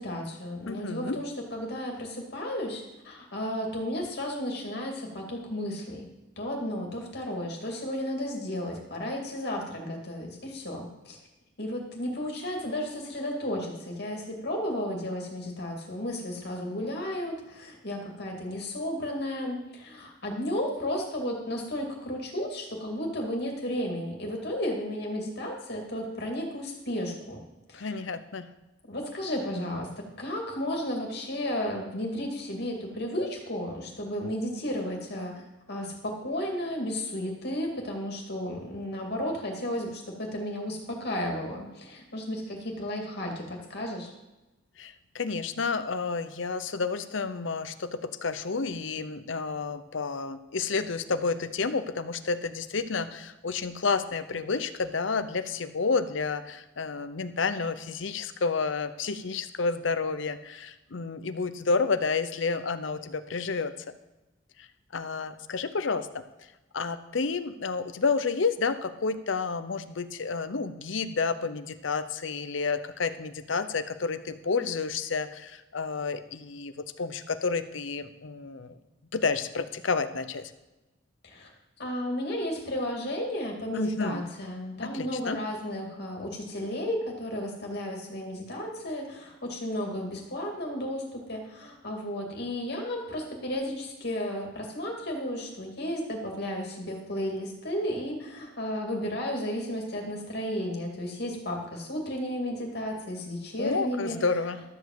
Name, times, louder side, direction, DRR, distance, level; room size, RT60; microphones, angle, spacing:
voice 1, 0.0-6.1 6.4-11.2 11.6-27.4 27.7-28.1 28.9-44.1 81.2-81.5 81.8-104.2, left 1 dB, 55° left, 0 dB, 2.4 m, -33 dB
voice 2, 0.7-1.2 27.7-28.5 44.8-63.7 64.6-64.7 64.9-66.1 66.7-78.8 79.1-80.5 83.7-84.2 84.8-85.4 103.6-104.6, left 4 dB, 75° left, 12 dB, 0.7 m, -30 dB
12.5 x 5.2 x 7.7 m, 1.0 s
head